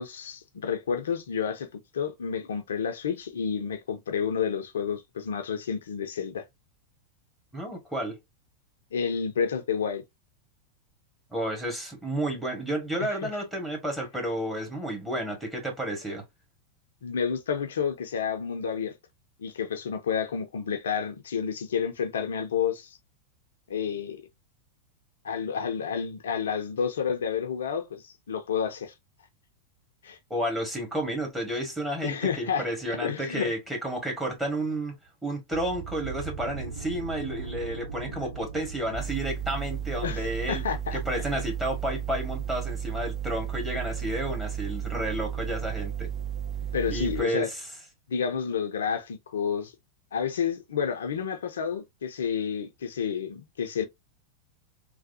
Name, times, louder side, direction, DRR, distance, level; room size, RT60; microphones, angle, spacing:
voice 1, 0.0-1.7 1.9-6.4 8.9-10.0 13.0-13.3 17.0-18.9 19.4-23.0 23.7-24.2 25.2-28.9 30.0-30.2 32.0-33.5 38.1-38.2 40.0-41.0 46.7-47.5 48.1-49.7 50.1-53.8, left 7 dB, 65° left, 0.4 m, -30 dB
voice 2, 7.5-8.2 11.3-16.2 30.3-34.9 35.2-40.6 40.9-46.1 46.9-47.6, right 1 dB, 5° right, 1.4 m, -31 dB
sound 1, 35.5-47.5, right 6 dB, 60° right, 0.8 m, -43 dB
sound 2, 38.9-47.2, right 9 dB, 25° right, 0.4 m, -33 dB
3.3 x 2.1 x 2.6 m
figure-of-eight pair, 90°, 0 cm